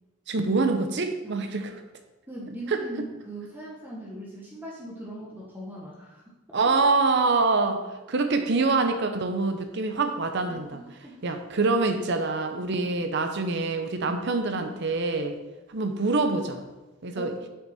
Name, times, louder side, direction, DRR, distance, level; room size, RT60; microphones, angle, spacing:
voice 1, 0.3-1.7 2.7-2.8 6.5-10.8 11.2-15.3 15.7-16.6 17.0-17.3, right 3 dB, 60° right, 6 dB, 0.7 m, -25 dB
voice 2, 2.3-6.2 10.5-10.6 11.0-11.2 12.7-12.9 17.2-17.3, right 1 dB, 10° right, -5 dB, 1.2 m, -40 dB
7.2 x 5.9 x 4.3 m, 1.1 s
head